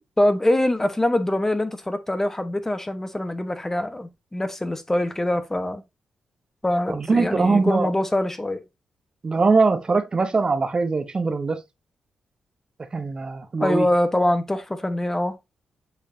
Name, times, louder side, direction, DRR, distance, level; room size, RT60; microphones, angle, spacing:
voice 1, 0.2-5.8 6.6-8.6 13.6-15.4, left 1 dB, 20° left, 1.2 m, -24 dB
voice 2, 6.9-7.9 9.2-11.6 12.9-13.9, right 4 dB, 40° right, 1.0 m, -21 dB
7.8 x 5.0 x 2.8 m
supercardioid pair, 45°, 2 cm